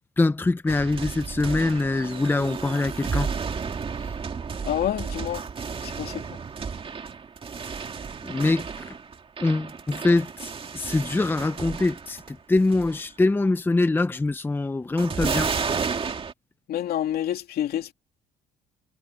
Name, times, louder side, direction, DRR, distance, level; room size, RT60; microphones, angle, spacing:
voice 1, 0.2-3.3 4.0-4.1 8.2-9.0 9.4-15.5, left 2 dB, 10° left, 0.8 m, -24 dB
sound 1, 0.7-12.3 12.6-13.0 15.0-16.3, right 5 dB, 30° right, 2.5 m, -32 dB
voice 2, 4.7-5.4 5.8-6.2 16.7-17.9, left 11 dB, 65° left, 2.9 m, -28 dB
cardioid pair, 110°, 17 cm